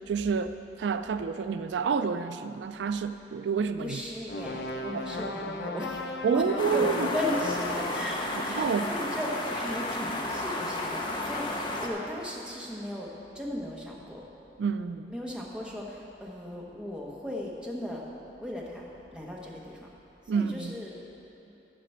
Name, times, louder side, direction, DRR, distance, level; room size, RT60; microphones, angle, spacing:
voice 1, 0.1-4.0 4.9-5.0 6.2-7.1 8.5-8.9 14.6-15.1 20.3-20.7, right 5 dB, 85° right, 10 dB, 0.4 m, -29 dB
voice 2, 3.8-6.0 6.3-14.2 15.1-18.0 18.4-18.9 19.1-19.9 20.2-21.0, left 1 dB, 5° right, -3 dB, 1.2 m, -36 dB
sound 1, 4.3-8.2, left 2 dB, 75° left, 0.7 m, -36 dB
sound 2, 6.6-11.9, left 1 dB, 25° left, 0.8 m, -32 dB
11.5 x 5.0 x 7.9 m, 2.9 s
head